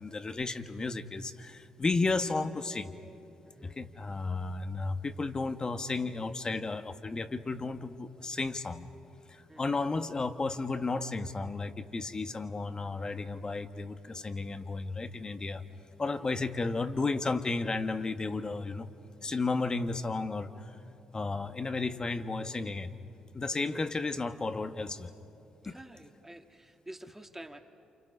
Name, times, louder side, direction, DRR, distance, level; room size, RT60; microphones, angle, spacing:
voice 1, 0.0-2.9 3.6-8.9 9.3-15.6 16.0-18.9 19.2-20.7 21.1-22.9 23.3-25.1 25.6-25.8, left 3 dB, 35° left, 10 dB, 1.4 m, -33 dB
voice 2, 3.4-3.8 9.5-9.8 16.2-16.3 23.5-23.8 25.6-27.6, right 1 dB, 15° right, 5 dB, 1.7 m, -49 dB
29.0 x 28.5 x 5.5 m, 3.0 s
hypercardioid pair, 50°, 2 cm